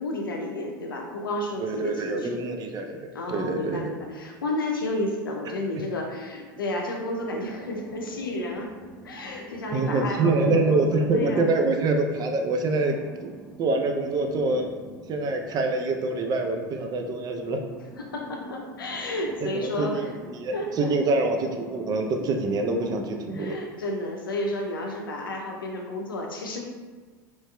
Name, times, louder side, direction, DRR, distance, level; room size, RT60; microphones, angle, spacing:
voice 1, 0.0-2.4 3.1-8.7 9.0-11.5 18.1-20.1 20.5-20.9 23.3-26.6, left 1 dB, 85° left, 1 dB, 0.5 m, -31 dB
voice 2, 1.6-3.9 9.7-13.0 13.2-14.7 15.1-17.6 19.4-23.6, right 3 dB, 35° right, 3 dB, 0.4 m, -25 dB
sound 1, 7.1-23.1, equal, 15° right, 0.9 m, -46 dB
3.0 x 2.8 x 2.2 m, 1.5 s
hypercardioid pair, 80°, 11 cm